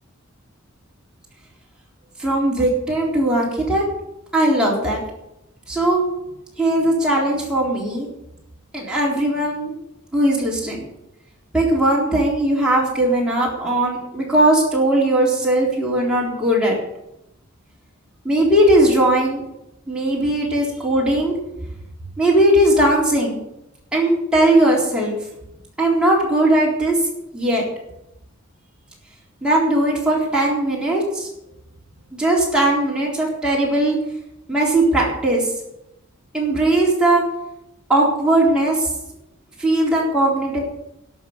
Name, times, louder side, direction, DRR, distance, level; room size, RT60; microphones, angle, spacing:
voice 1, 2.2-3.9 4.3-5.0 5.7-6.0 6.6-8.1 8.7-9.8 10.1-10.9 11.5-16.7 18.2-19.4 19.9-21.4 22.2-23.4 23.9-25.1 25.8-27.0 27.3-27.6 29.4-31.3 32.1-34.0 34.5-35.5 36.3-37.2 37.9-38.9 39.6-40.6, right 1 dB, 5° right, -5 dB, 3.9 m, -18 dB
11.5 x 7.3 x 9.5 m, 0.86 s
head